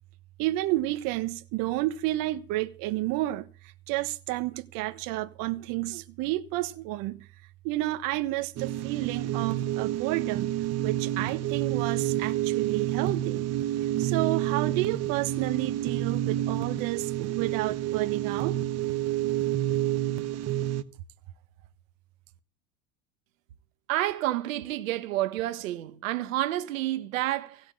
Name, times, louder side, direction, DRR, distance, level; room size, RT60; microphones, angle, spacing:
voice 1, 0.4-3.5 3.9-7.3 7.6-10.5 10.8-13.5 14.0-18.6, right 17 dB, 60° right, 1.3 m, -30 dB
sound 1, 8.6-20.8, right 13 dB, 40° right, 1.2 m, -29 dB
voice 2, 23.9-27.6, right 15 dB, 90° right, 1.5 m, -29 dB
16.5 x 6.4 x 10.0 m
supercardioid pair, 120°, 39 cm